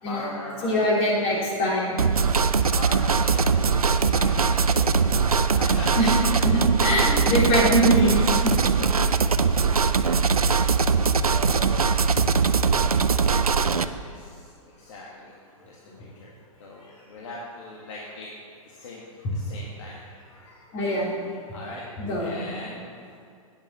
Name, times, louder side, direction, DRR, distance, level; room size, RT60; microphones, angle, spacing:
voice 1, 0.0-1.0 1.3-1.4 2.1-2.3 2.8-10.4 11.1-11.9 12.9-15.3 15.6-18.3 18.7-19.0 19.3-20.6 21.5-21.8 22.2-23.2, left 2 dB, 55° left, -3 dB, 1.9 m, -40 dB
voice 2, 0.6-2.0 6.0-8.2 8.4-8.5 19.2-19.3 20.7-21.1 22.0-22.5, equal, 35° left, -3 dB, 3.4 m, -23 dB
sound 1, 2.0-13.9, right 5 dB, 90° right, 0.5 m, -21 dB
9.1 x 8.7 x 6.9 m, 2.3 s
figure-of-eight pair, 115°, 18 cm